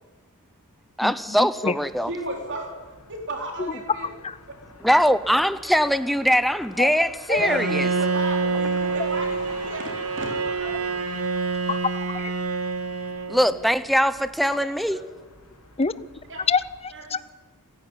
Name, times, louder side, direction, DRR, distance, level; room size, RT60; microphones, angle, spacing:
voice 1, 1.0-2.1 4.8-7.9 13.3-15.0, equal, ahead, 14 dB, 0.8 m, -22 dB
Motor vehicle (road), 1.8-16.8, left 2 dB, 80° left, 4.2 m, -46 dB
voice 2, 2.1-2.7 3.1-4.1 7.3-10.9 14.5-15.0 16.3-16.4 16.9-17.3, right 2 dB, 55° right, 2 dB, 4.0 m, -35 dB
Bowed string instrument, 7.4-13.6, right 4 dB, 75° right, 2.2 m, -27 dB
voice 3, 11.7-12.3 15.8-16.0 16.5-17.2, left 5 dB, 25° left, 17 dB, 0.6 m, -26 dB
29.0 x 11.0 x 9.4 m, 1.3 s
head